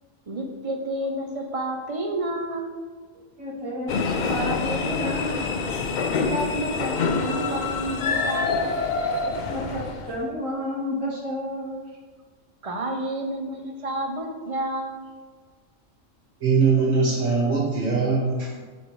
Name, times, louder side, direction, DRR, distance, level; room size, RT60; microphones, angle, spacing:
voice 1, 0.3-2.7 6.3-8.7 12.6-15.1, right 1 dB, 40° right, 4 dB, 0.5 m, -30 dB
voice 2, 3.4-5.5 9.2-11.8, equal, 85° right, -5 dB, 2.1 m, -31 dB
sound 1, 3.9-10.2, left 4 dB, 70° left, 0.4 m, -26 dB
voice 3, 16.4-18.6, right 4 dB, 65° right, -6 dB, 2.1 m, -21 dB
6.8 x 5.0 x 3.2 m, 1.4 s
omnidirectional pair, 1.4 m